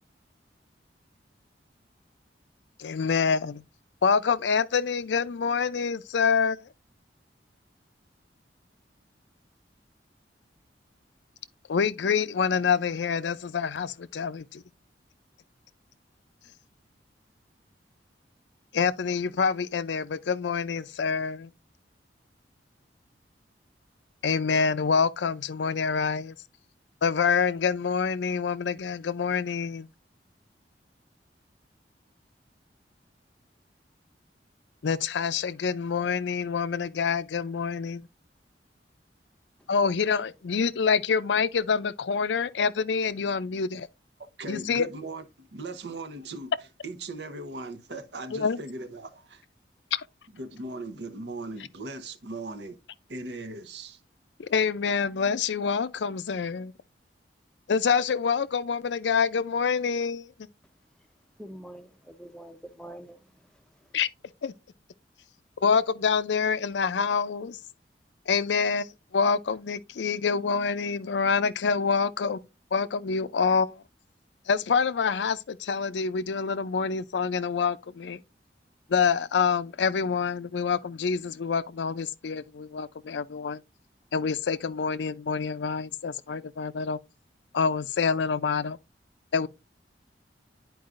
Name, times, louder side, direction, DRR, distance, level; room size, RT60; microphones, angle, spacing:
voice 1, 2.8-3.6 4.0-6.7 11.7-14.6 18.7-21.5 24.2-26.3 27.0-29.9 34.8-38.1 39.7-43.9 44.5-44.9 48.3-48.6 54.4-56.7 57.7-60.3 63.9-64.1 64.4-64.5 65.6-67.6 68.3-72.4 72.7-73.8 74.5-78.2 78.9-83.6 84.1-87.0 87.5-88.8 89.3-89.5, left 5 dB, 85° left, 0.5 m, -26 dB
voice 2, 44.4-46.5 46.8-49.2 50.4-52.8 53.1-54.0, right 2 dB, 70° right, 0.8 m, -38 dB
voice 3, 61.4-64.0, right 1 dB, 5° left, 0.6 m, -46 dB
10.5 x 4.7 x 2.5 m
head